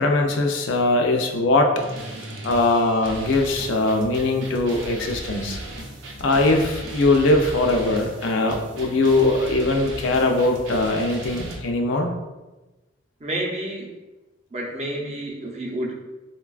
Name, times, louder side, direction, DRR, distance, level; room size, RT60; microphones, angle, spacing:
voice 1, 0.0-1.7 2.4-5.6 6.2-12.1, left 2 dB, 80° left, 3 dB, 0.4 m, -21 dB
sound 1, 1.8-11.6, right 1 dB, 85° right, 0.6 m, -37 dB
voice 2, 13.2-13.9 14.5-15.9, right 1 dB, 35° right, -2 dB, 0.5 m, -29 dB
3.8 x 2.2 x 2.3 m, 1.1 s
head